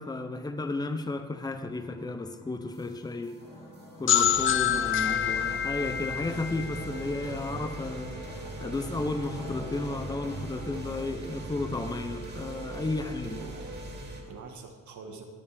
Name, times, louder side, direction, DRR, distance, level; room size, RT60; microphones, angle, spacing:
voice 1, 0.0-3.4 4.0-13.4, left 2 dB, 15° left, 8 dB, 0.8 m, -33 dB
sound 1, 1.7-14.2, right 2 dB, 35° right, 2.9 m, -41 dB
sound 2, 3.4-11.2, left 1 dB, 75° left, 3.7 m, -47 dB
sound 3, 4.1-7.7, left 9 dB, 45° left, 0.5 m, -27 dB
voice 2, 12.9-15.3, right 4 dB, 70° right, 3 dB, 1.6 m, -47 dB
19.5 x 7.0 x 3.6 m, 1.5 s
cardioid pair, 90°, 30 cm